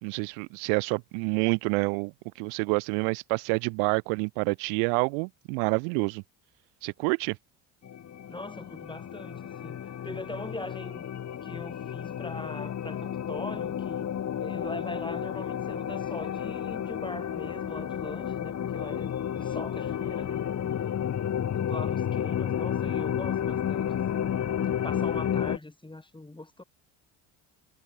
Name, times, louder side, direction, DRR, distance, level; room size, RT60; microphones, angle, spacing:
voice 1, 0.0-2.1 2.4-6.2 6.8-7.4, right 40 dB or more, 75° right, 1.1 m, -28 dB
sound 1, 7.8-25.6, left 9 dB, 40° left, 1.5 m, -31 dB
voice 2, 8.3-11.0 11.4-14.1 14.4-20.5 21.5-24.3 24.6-26.6, left 2 dB, 10° left, 4.0 m, -41 dB
hypercardioid pair, 65°, 43 cm